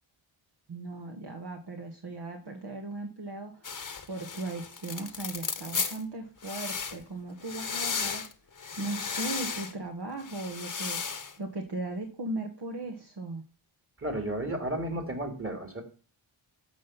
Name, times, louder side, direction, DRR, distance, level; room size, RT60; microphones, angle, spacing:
voice 1, 0.7-3.7 4.1-8.2 8.8-11.0 11.4-13.4, right 2 dB, 50° right, 2 dB, 1.6 m, -37 dB
sound 1, 3.6-6.0 6.4-7.0 7.4-8.3 8.6-9.7 10.2-11.3, left 5 dB, 40° left, 1.1 m, -35 dB
voice 2, 14.0-15.8, right 1 dB, 25° right, 4 dB, 2.8 m, -33 dB
13.0 x 5.4 x 5.9 m, 0.35 s
wide cardioid pair, 110°, 50 cm